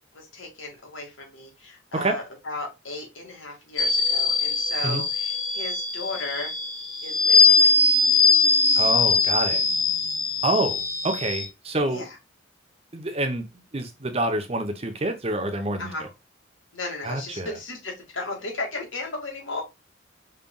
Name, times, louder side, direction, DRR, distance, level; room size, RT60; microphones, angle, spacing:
voice 1, 0.1-6.5 7.0-8.0 11.9-12.2 15.8-16.1 16.7-19.6, left 2 dB, 75° left, 2.0 m, -35 dB
sound 1, 3.8-11.5, left 3 dB, 40° left, 1.2 m, -21 dB
voice 2, 8.8-9.6 10.4-12.0 12.9-16.1 17.0-17.6, right 2 dB, 30° right, 0.8 m, -27 dB
5.4 x 3.3 x 2.3 m
head